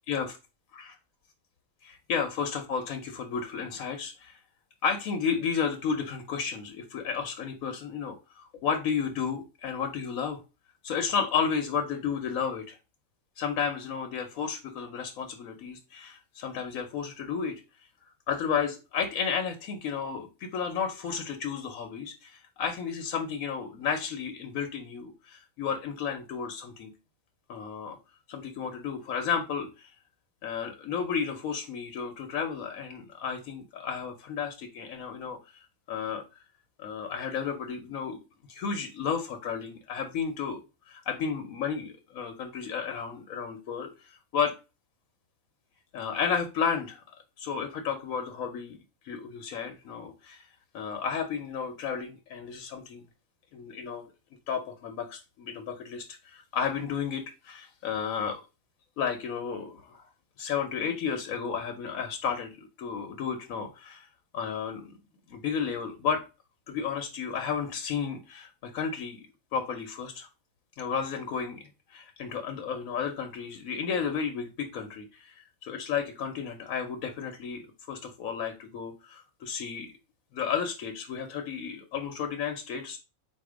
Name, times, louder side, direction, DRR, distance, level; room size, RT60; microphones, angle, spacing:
voice 1, 1.8-4.4 4.8-10.4 10.8-12.8 13.4-17.6 18.3-26.9 27.5-28.0 28.3-29.7 30.4-35.4 35.9-36.2 36.8-38.2 38.5-40.6 40.9-44.5 45.9-47.0 47.4-48.8 49.0-50.4 50.7-53.0 53.5-54.0 54.5-58.4 59.0-60.0 60.4-64.1 64.3-65.0 65.3-66.2 66.7-69.2 69.5-70.3 70.8-79.9 80.3-83.0, left 6 dB, 85° left, 5 dB, 1.2 m, -32 dB
3.9 x 2.8 x 4.8 m, 0.29 s
omnidirectional pair, 1.4 m